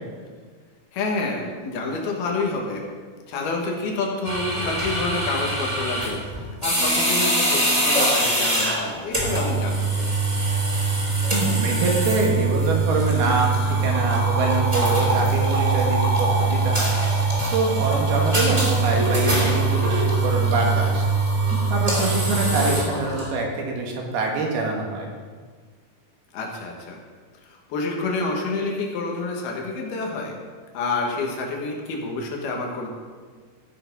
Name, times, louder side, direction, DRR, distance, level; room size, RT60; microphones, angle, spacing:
voice 1, 0.9-2.8 3.3-10.1 18.1-18.5 22.5-22.8 26.3-27.0 27.4-30.4 30.7-32.9, left 3 dB, 75° left, 0 dB, 3.4 m, -28 dB
sound 1, 4.2-23.3, right 2 dB, 10° right, 2.5 m, -22 dB
voice 2, 11.3-21.1 21.7-25.1, right 3 dB, 75° right, 0 dB, 3.5 m, -25 dB
15.0 x 6.9 x 5.4 m, 1.6 s
omnidirectional pair, 4.6 m